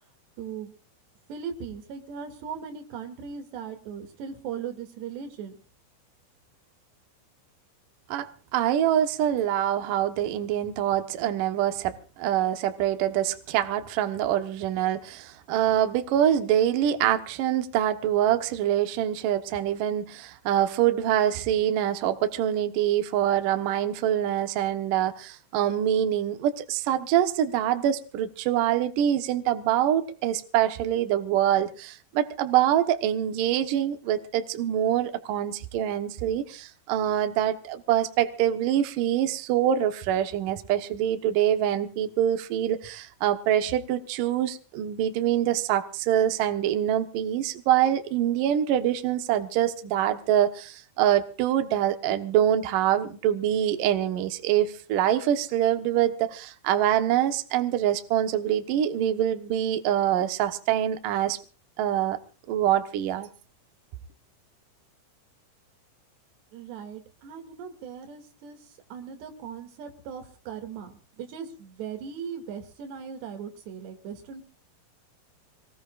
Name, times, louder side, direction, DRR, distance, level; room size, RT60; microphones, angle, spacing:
voice 1, 0.4-0.7 1.3-5.5 66.5-74.4, right 7 dB, 60° right, 5 dB, 4.3 m, -38 dB
voice 2, 8.1-61.4 61.8-62.2 62.5-63.3, right 11 dB, 85° right, 8 dB, 1.9 m, -25 dB
25.5 x 19.0 x 2.5 m, 0.38 s
omnidirectional pair, 5.9 m